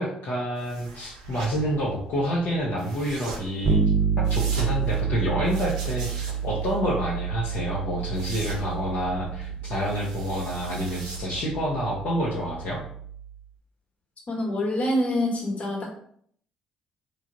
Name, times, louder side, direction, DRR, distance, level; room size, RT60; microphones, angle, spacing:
voice 1, 0.0-3.8 4.3-12.8, equal, 60° left, -5 dB, 0.7 m, -28 dB
sound 1, 0.6-11.6, right 3 dB, 90° right, 0.4 m, -42 dB
Bass guitar, 3.6-13.3, right 7 dB, 40° right, 0.6 m, -29 dB
voice 2, 14.3-15.9, left 1 dB, 35° left, -1 dB, 1.1 m, -26 dB
3.2 x 2.3 x 2.6 m, 0.62 s
hypercardioid pair, 50°, 4 cm